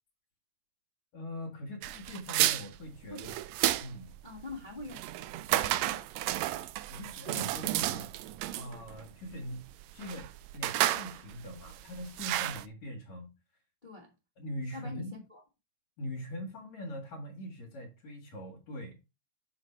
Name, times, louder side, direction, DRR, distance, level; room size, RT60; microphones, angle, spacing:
voice 1, 1.1-3.2 3.8-4.1 6.9-8.2 8.5-9.7 9.9-13.3 14.4-15.2 16.0-19.0, equal, 65° left, 2.9 m, -42 dB
sound 1, 1.8-12.6, right 15 dB, 80° right, 1.6 m, -32 dB
voice 2, 4.2-5.0 5.5-6.3 13.8-14.1 14.7-15.4, left 3 dB, 25° left, 1.2 m, -45 dB
6.4 x 6.0 x 4.4 m
omnidirectional pair, 3.4 m